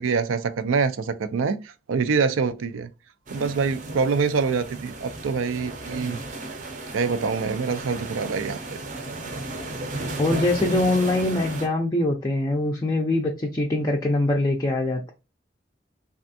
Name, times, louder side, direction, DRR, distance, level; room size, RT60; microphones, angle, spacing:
voice 1, 0.0-2.9 3.3-6.2 6.9-8.8, right 5 dB, 85° right, 0.4 m, -25 dB
sound 1, 3.3-11.7, right 2 dB, 40° right, 0.6 m, -34 dB
voice 2, 10.2-15.1, left 2 dB, 20° left, 0.4 m, -23 dB
3.4 x 2.4 x 2.6 m
head